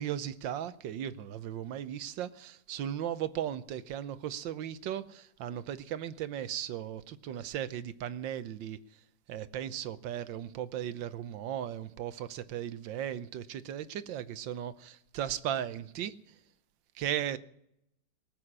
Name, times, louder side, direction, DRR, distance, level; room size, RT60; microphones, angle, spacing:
voice 1, 0.0-8.8 9.3-16.1 16.9-17.4, right 10 dB, 80° right, 1.5 m, -36 dB
19.0 x 7.8 x 9.8 m
omnidirectional pair, 2.0 m